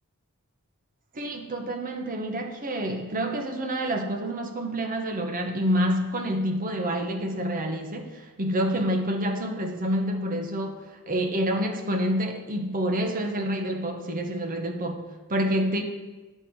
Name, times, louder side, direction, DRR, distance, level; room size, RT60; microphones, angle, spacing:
voice 1, 1.1-15.8, equal, 40° right, 4 dB, 0.9 m, -28 dB
11.0 x 4.5 x 4.6 m, 1.2 s
head